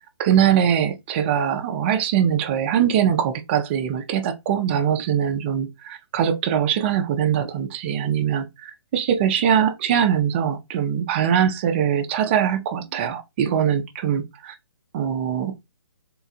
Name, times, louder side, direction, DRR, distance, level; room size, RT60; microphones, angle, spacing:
voice 1, 0.2-14.5 14.9-15.5, right 9 dB, 25° right, 0.6 m, -22 dB
3.8 x 2.3 x 4.2 m
hypercardioid pair, 155°, 14 cm